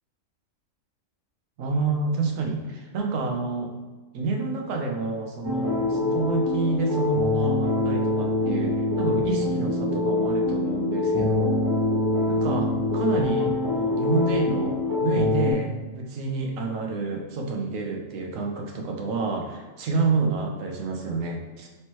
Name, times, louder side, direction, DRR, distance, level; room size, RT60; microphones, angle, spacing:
voice 1, 1.6-3.7 4.1-11.6 12.3-21.7, right 3 dB, 80° right, 1 dB, 1.1 m, -29 dB
sound 1, 5.4-15.5, left 2 dB, 20° right, 0.6 m, -24 dB
4.3 x 3.2 x 3.0 m, 1.3 s
omnidirectional pair, 1.4 m